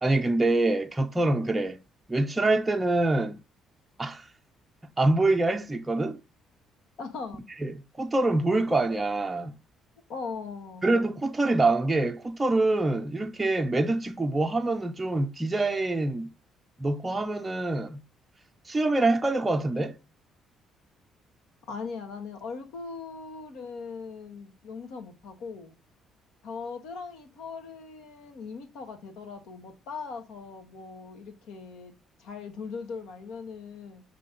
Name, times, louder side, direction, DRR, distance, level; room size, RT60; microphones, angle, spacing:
voice 1, 0.0-1.8 2.1-3.4 4.0-4.2 5.0-6.2 7.6-9.5 10.8-16.3 16.8-18.0 18.7-20.0, right 2 dB, 10° right, 0.5 m, -25 dB
voice 2, 7.0-7.4 10.1-10.9 21.7-25.7 26.4-31.9 32.2-34.0, left 5 dB, 75° left, 1.5 m, -39 dB
6.0 x 3.3 x 5.2 m
cardioid pair, 160°, 0 cm